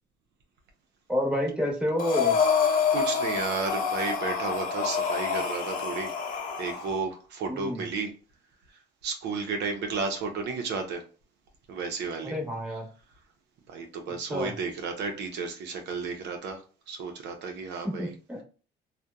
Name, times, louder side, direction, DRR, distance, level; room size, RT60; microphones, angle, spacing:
voice 1, 1.1-2.4 7.5-7.8 12.2-12.8 14.3-14.5 17.8-18.4, equal, 5° right, -1 dB, 1.0 m, -29 dB
Breathing, 2.0-6.9, left 6 dB, 50° left, 0.6 m, -27 dB
voice 2, 2.9-6.1 6.6-8.1 9.0-11.0 11.7-12.4 13.7-16.6 16.9-18.1, right 4 dB, 70° right, 4 dB, 0.6 m, -32 dB
2.7 x 2.1 x 2.2 m, 0.36 s
cardioid pair, 95°, 18 cm